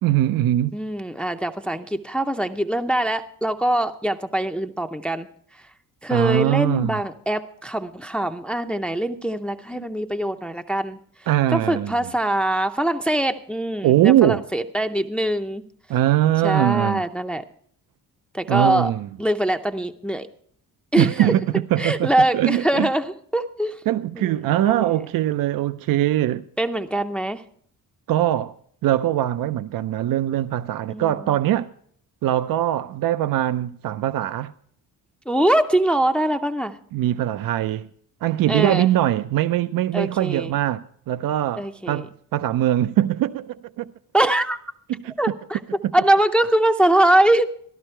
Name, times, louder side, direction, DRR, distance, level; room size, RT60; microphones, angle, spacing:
voice 1, 0.0-0.8 6.1-7.0 9.7-9.9 11.3-11.9 13.8-14.4 15.9-17.0 18.5-19.1 20.9-22.9 23.9-26.4 28.1-28.5 28.8-31.7 32.2-34.5 36.9-37.9 38.2-43.9 45.0-45.1, right 13 dB, 70° right, 0.5 m, -21 dB
voice 2, 0.7-5.3 5.5-5.6 6.0-11.0 11.5-15.6 16.4-17.4 18.3-18.9 19.2-20.3 20.9-21.3 21.8-23.8 24.2-24.4 24.6-24.9 26.6-27.4 30.9-31.2 35.3-36.8 38.5-38.9 39.9-40.5 41.6-42.1 44.1-44.6 45.2-45.6 45.9-47.4, right 1 dB, 5° left, 0.5 m, -23 dB
14.0 x 12.0 x 4.4 m
cardioid pair, 145°, 35 cm